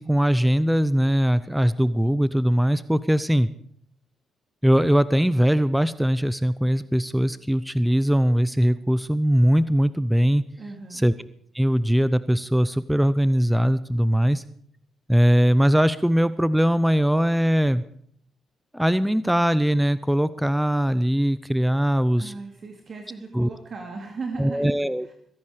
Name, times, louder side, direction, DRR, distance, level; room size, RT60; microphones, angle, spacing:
voice 1, 0.0-3.5 4.6-10.4 10.9-11.1 11.5-14.4 15.1-17.8 18.7-22.3 23.3-23.5 24.4-25.1, equal, 5° right, 16 dB, 0.8 m, -21 dB
voice 2, 10.6-11.0 22.2-24.7 25.1-25.2, right 3 dB, 45° right, 3 dB, 2.5 m, -37 dB
23.5 x 11.0 x 5.0 m, 0.62 s
hypercardioid pair, 45°, 0 cm